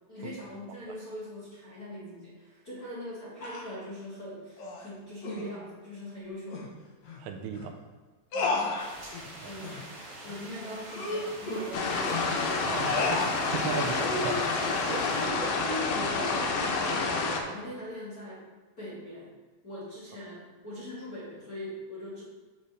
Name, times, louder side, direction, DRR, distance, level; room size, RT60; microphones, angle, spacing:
voice 1, 0.1-6.7 8.3-8.8 9.4-9.8 10.2-12.7 13.7-14.1 14.9-18.5 18.8-19.3 19.6-22.2, left 1 dB, 40° left, -8 dB, 1.4 m, -41 dB
sound 1, 3.4-3.7 4.6-4.9 5.2-5.5 6.5-6.7 7.0-7.2 7.5-7.7 8.3-9.3 9.6-9.8 10.3-10.4 10.8-12.3 12.9-13.4 14.0-14.4, left 3 dB, 65° left, 1.9 m, -32 dB
voice 2, 7.2-7.7 9.3-9.5 12.6-13.2 13.5-14.0 14.2-14.4 14.7-15.0, right 7 dB, 90° right, 5 dB, 2.5 m, -35 dB
sound 2, 8.8-15.3, right 1 dB, 60° right, 0.7 m, -45 dB
sound 3, 11.7-17.4, left 4 dB, 80° left, 1.5 m, -29 dB
7.5 x 6.8 x 3.3 m, 1.3 s
omnidirectional pair, 4.1 m